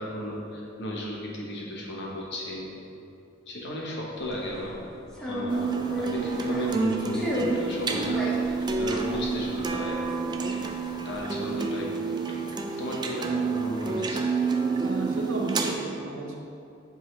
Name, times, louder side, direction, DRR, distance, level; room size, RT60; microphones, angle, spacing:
voice 1, 0.0-2.7 3.5-8.3 8.6-10.7 11.0-11.9 12.3-12.4 12.8-14.3, equal, 60° left, -3 dB, 1.0 m, -35 dB
sound 1, 4.2-4.6 5.1-6.8 7.1-7.7 8.0-10.3 10.6-11.2, equal, 5° left, 0.8 m, -33 dB
sound 2, 5.5-15.7, right 4 dB, 20° right, 0.3 m, -29 dB
voice 2, 14.8-16.4, right 2 dB, 75° right, -1 dB, 0.9 m, -33 dB
7.3 x 4.0 x 3.2 m, 2.7 s
head